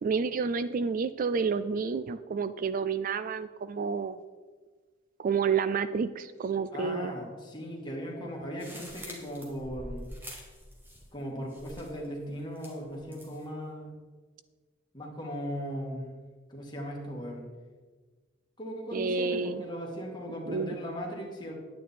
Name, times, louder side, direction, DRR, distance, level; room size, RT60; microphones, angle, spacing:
voice 1, 0.0-4.2 5.2-7.1 18.9-19.6 20.5-20.7, right 5 dB, 45° right, 14 dB, 0.3 m, -29 dB
voice 2, 6.7-10.1 11.1-13.9 14.9-16.2 16.5-17.5 18.6-21.5, equal, 25° left, -1 dB, 2.1 m, -38 dB
sound 1, 8.6-11.2 11.5-12.1 12.6-13.4, equal, 10° right, 1.9 m, -45 dB
10.5 x 9.2 x 4.3 m, 1.4 s
head